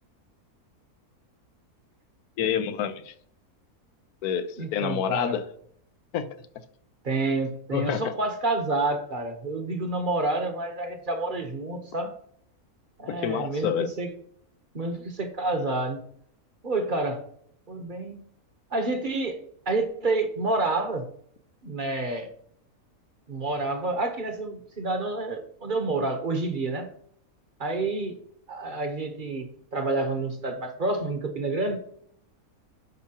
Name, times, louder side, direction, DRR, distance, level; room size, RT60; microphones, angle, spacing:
voice 1, 2.4-3.1 4.2-5.4 6.1-6.3 7.7-8.1 13.1-13.9, left 8 dB, 80° left, 1.2 m, -28 dB
voice 2, 4.6-5.4 7.0-12.1 13.0-13.7 14.0-14.1 14.7-16.0 16.6-17.2 17.7-18.2 18.7-19.4 19.7-21.0 21.6-22.3 23.3-26.9 27.6-28.2 28.5-31.8, right 2 dB, 40° right, 1.0 m, -28 dB
10.5 x 5.7 x 2.9 m
omnidirectional pair, 1.6 m